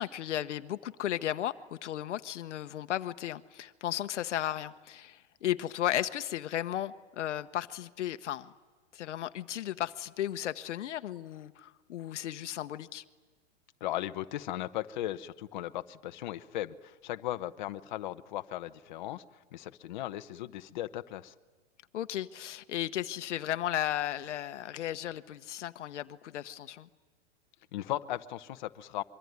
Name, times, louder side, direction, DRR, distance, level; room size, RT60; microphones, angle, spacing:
voice 1, 0.0-8.5 8.9-13.0 21.9-26.9, left 12 dB, 75° left, 1.1 m, -35 dB
voice 2, 13.8-19.2 19.5-21.3 27.7-29.0, left 14 dB, 40° left, 1.0 m, -37 dB
25.0 x 24.0 x 9.5 m
supercardioid pair, 175°, 36 cm